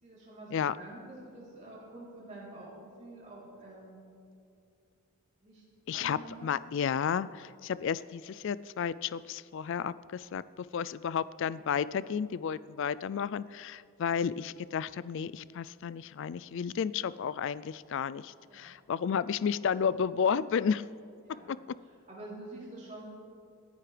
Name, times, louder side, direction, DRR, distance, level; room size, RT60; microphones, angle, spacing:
voice 1, 0.0-4.0 5.4-5.6 5.9-6.5 18.4-18.8 21.2-21.5 21.8-23.0, right 2 dB, 35° right, -7 dB, 3.5 m, -48 dB
voice 2, 5.9-10.4 10.7-20.8 21.5-21.6, left 7 dB, 55° left, 17 dB, 0.3 m, -32 dB
27.5 x 10.5 x 3.4 m, 2.4 s
head